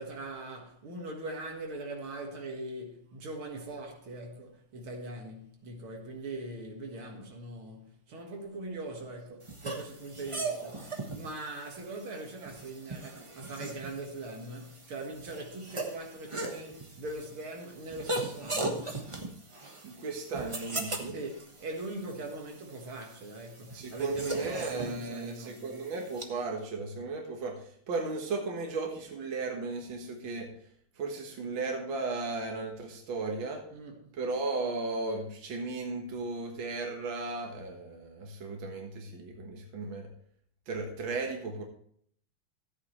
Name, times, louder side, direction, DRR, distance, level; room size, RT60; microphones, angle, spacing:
voice 1, 0.0-10.9 11.1-19.0 21.1-25.8 33.7-34.1, right 2 dB, 85° right, 2.6 m, -41 dB
sound 1, 9.4-26.2, right 2 dB, 20° right, 1.0 m, -39 dB
voice 2, 19.8-21.2 23.7-27.6 27.9-30.5 31.0-33.6 34.1-40.1 40.7-41.6, right 3 dB, 70° right, 2.2 m, -35 dB
14.0 x 8.7 x 3.2 m
omnidirectional pair, 2.3 m